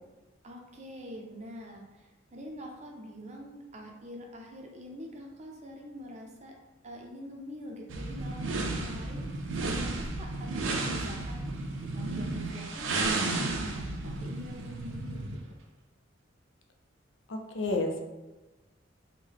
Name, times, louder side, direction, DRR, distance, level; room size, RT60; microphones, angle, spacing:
voice 1, 0.4-6.5 6.8-9.2 9.6-15.3, equal, 35° right, 1 dB, 0.5 m, -45 dB
sound 1, 7.9-15.5, right 2 dB, 80° right, 0.5 m, -33 dB
voice 2, 17.3-18.0, left 2 dB, 80° left, 3 dB, 0.5 m, -30 dB
3.6 x 2.2 x 3.4 m, 1.2 s
head